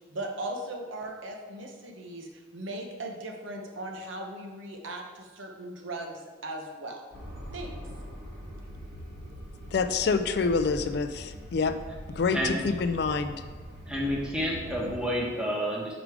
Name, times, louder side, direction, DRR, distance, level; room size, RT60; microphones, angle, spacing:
voice 1, 0.1-7.0 7.5-7.7, right 1 dB, 80° right, 2 dB, 0.9 m, -38 dB
sound 1, 7.1-15.1, equal, 45° right, 1.3 m, -42 dB
voice 2, 9.7-11.7 12.1-13.4, left 4 dB, 55° left, 9 dB, 0.3 m, -27 dB
voice 3, 12.3-12.6 13.8-16.0, equal, 5° right, -3 dB, 1.0 m, -29 dB
5.0 x 5.0 x 4.7 m, 1.4 s
head